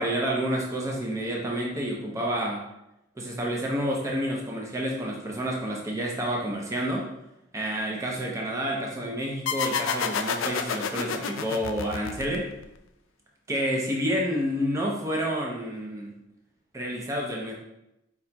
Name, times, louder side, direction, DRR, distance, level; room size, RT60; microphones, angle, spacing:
voice 1, 0.0-2.6 3.2-7.1 7.5-12.5 13.5-16.1 16.7-17.6, equal, 15° right, -2 dB, 0.6 m, -29 dB
sound 1, 9.5-12.8, left 6 dB, 80° left, 0.4 m, -30 dB
4.8 x 4.2 x 2.2 m, 0.87 s
head